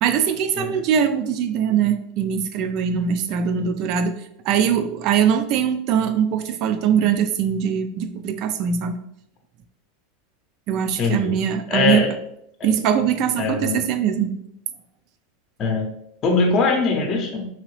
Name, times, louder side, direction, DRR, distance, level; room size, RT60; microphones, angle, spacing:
voice 1, 0.0-4.2 4.4-9.0 10.7-12.0 12.6-14.3, right 8 dB, 55° right, 9 dB, 0.4 m, -21 dB
voice 2, 11.0-11.4 11.7-12.1 13.4-13.8 15.6-15.9 16.2-17.5, left 4 dB, 40° left, 2 dB, 0.7 m, -21 dB
2.9 x 2.8 x 3.1 m, 0.74 s
hypercardioid pair, 110°, 0 cm